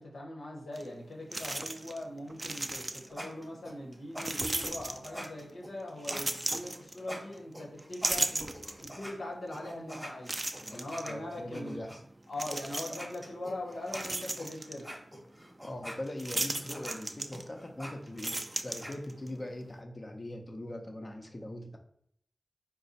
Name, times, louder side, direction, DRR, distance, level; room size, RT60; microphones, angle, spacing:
voice 1, 0.0-8.5 8.8-10.3 10.7-11.8 12.3-15.0, left 1 dB, 80° left, -1 dB, 1.1 m, -41 dB
sound 1, 0.8-0.9 1.3-2.0 2.3-3.2 4.2-5.4 6.0-7.4 7.8-9.1 9.6-9.7 10.3-11.1 12.3-13.2 13.6-14.8 16.2-17.7 18.0-19.3, right 2 dB, 30° right, 0.4 m, -35 dB
sound 2, 2.9-9.1 9.5-12.0 12.5-12.6 12.9-18.9, equal, 5° left, 1.0 m, -45 dB
voice 2, 10.6-12.0 15.6-21.8, left 1 dB, 40° left, 4 dB, 0.7 m, -41 dB
4.2 x 2.2 x 4.0 m, 0.67 s
cardioid pair, 50°, 0 cm